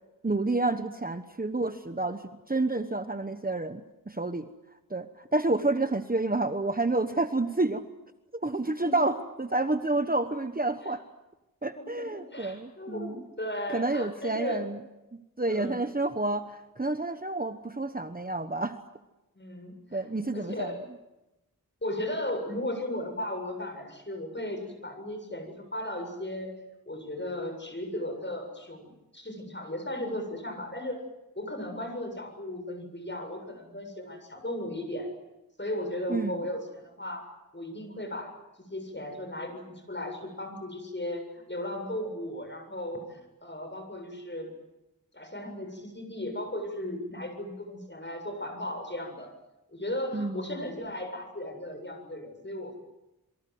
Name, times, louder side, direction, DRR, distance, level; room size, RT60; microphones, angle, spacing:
voice 1, 0.2-4.5 4.9-7.8 8.4-11.0 11.6-13.2 13.7-14.8 15.4-18.8 19.9-20.7 36.1-36.4 50.1-50.4, right 2 dB, 25° right, 9 dB, 1.2 m, -29 dB
voice 2, 8.6-9.0 11.8-14.6 15.5-15.8 19.3-20.0 20.3-20.8 21.8-26.6 26.9-31.0 31.4-35.1 35.6-37.2 37.5-38.3 38.7-44.5 45.1-49.3 49.7-52.8, left 1 dB, 30° left, 5 dB, 7.5 m, -36 dB
27.5 x 23.5 x 7.9 m, 0.98 s
wide cardioid pair, 60°, 35 cm